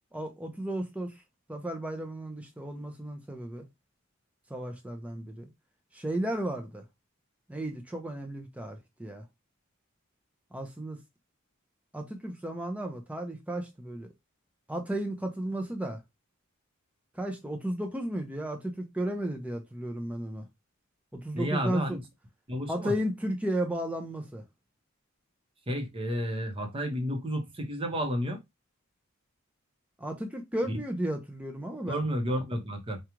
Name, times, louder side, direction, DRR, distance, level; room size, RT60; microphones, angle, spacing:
voice 1, 0.1-1.1 1.5-3.6 4.5-5.5 5.9-6.8 7.5-9.2 10.5-11.0 11.9-14.1 14.7-16.0 17.1-20.4 21.1-22.0 22.7-24.4 30.0-32.0, right 1 dB, 5° right, 0.6 m, -34 dB
voice 2, 21.3-22.0 22.5-22.9 25.7-28.4 31.9-33.0, equal, 25° right, 0.9 m, -31 dB
4.9 x 2.4 x 2.9 m
head